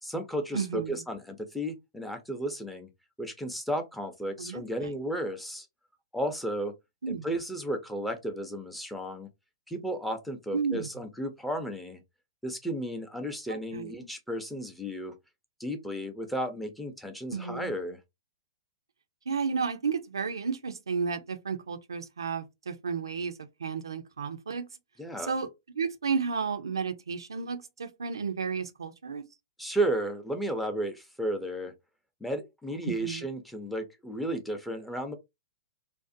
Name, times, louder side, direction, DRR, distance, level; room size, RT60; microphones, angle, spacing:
voice 1, 0.0-2.9 3.2-5.7 6.1-6.7 7.1-9.3 9.7-12.0 12.4-15.1 15.6-18.0 25.0-25.3 29.6-31.7 32.2-35.1, right 1 dB, 5° left, 0.5 m, -33 dB
voice 2, 0.5-1.0 4.4-4.9 7.0-7.2 10.5-10.9 13.5-13.9 17.3-17.7 19.3-24.7 25.2-25.5 25.8-29.2 32.9-33.2, right 5 dB, 90° right, 0.4 m, -32 dB
2.5 x 2.0 x 2.5 m
hypercardioid pair, 125°, 2 cm